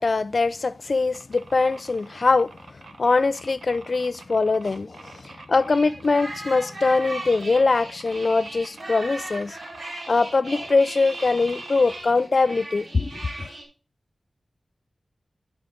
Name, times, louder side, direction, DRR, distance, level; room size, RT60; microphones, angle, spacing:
voice 1, 0.0-2.5 3.0-9.6 10.1-13.5, left 3 dB, 55° left, 0.4 m, -22 dB
sound 1, 1.1-12.0, right 4 dB, 90° right, 0.9 m, -46 dB
sound 2, 5.7-13.6, right 2 dB, 65° right, 3.6 m, -38 dB
10.5 x 5.0 x 3.5 m
wide cardioid pair, 85°, 0 cm